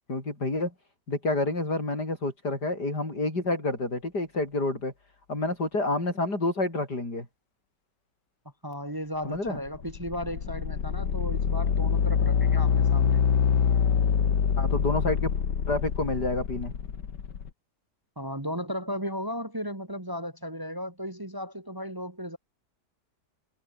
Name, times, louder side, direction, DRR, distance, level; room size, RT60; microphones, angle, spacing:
voice 1, 0.1-0.7 1.1-4.9 5.3-7.3 9.2-9.6 14.6-15.3 15.7-16.7, left 2 dB, 70° left, 7.5 m, -28 dB
voice 2, 8.6-13.2 18.2-22.4, equal, 10° right, 2.1 m, -35 dB
sound 1, 9.5-17.5, left 7 dB, 85° left, 2.4 m, -25 dB
omnidirectional pair, 1.8 m